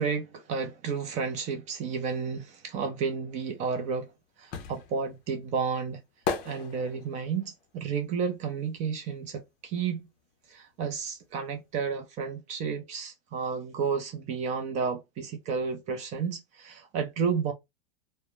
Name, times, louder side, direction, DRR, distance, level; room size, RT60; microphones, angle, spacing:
voice 1, 0.0-4.1 4.4-6.0 6.4-10.0 10.5-17.5, right 5 dB, 25° right, 0.5 m, -31 dB
sound 1, 3.6-9.5 9.8-11.4 11.6-11.7, left 5 dB, 30° left, 0.6 m, -38 dB
2.2 x 2.0 x 2.9 m
hypercardioid pair, 135°, 30 cm